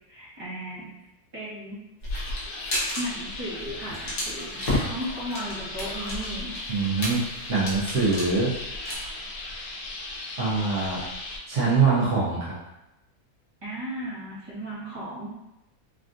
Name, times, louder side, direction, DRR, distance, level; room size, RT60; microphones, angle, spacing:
voice 1, 0.1-0.9 1.3-1.8 2.9-4.6 4.9-6.5 13.6-15.3, equal, 25° right, -8 dB, 0.7 m, -35 dB
sound 1, 2.0-3.0 3.3-3.5 3.8-8.9, left 1 dB, 55° left, 1.1 m, -31 dB
sound 2, 2.1-11.4, left 2 dB, 80° left, 1.1 m, -37 dB
voice 2, 6.7-7.2 7.5-8.5 10.4-11.0 11.5-12.5, right 4 dB, 60° right, -7 dB, 0.9 m, -23 dB
3.4 x 2.4 x 2.5 m, 0.93 s
omnidirectional pair, 1.7 m